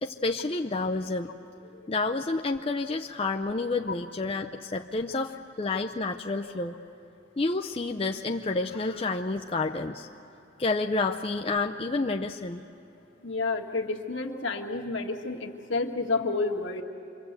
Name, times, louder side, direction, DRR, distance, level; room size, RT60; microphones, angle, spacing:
voice 1, 0.0-1.3 1.9-6.8 7.4-10.1 10.6-12.6, left 3 dB, 30° left, 4 dB, 0.5 m, -29 dB
voice 2, 13.2-16.8, left 3 dB, 70° left, 2 dB, 1.6 m, -30 dB
27.0 x 24.0 x 8.1 m, 2.9 s
head